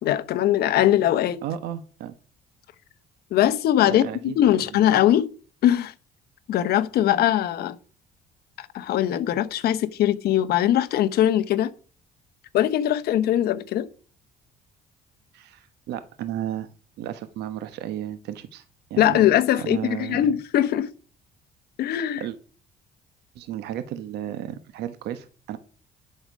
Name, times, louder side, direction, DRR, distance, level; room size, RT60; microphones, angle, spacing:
voice 1, 0.0-1.4 3.3-5.3 5.6-5.9 6.5-7.7 8.6-11.7 12.5-13.9 19.0-20.9 21.8-22.2, left 12 dB, 70° left, 1.0 m, -21 dB
voice 2, 1.4-2.1 3.9-4.9 15.3-16.7 17.0-18.6 18.9-19.3 19.6-20.3 22.2-22.4 23.3-25.6, right 11 dB, 80° right, 1.1 m, -33 dB
11.0 x 6.7 x 5.2 m
cardioid pair, 110°, 17 cm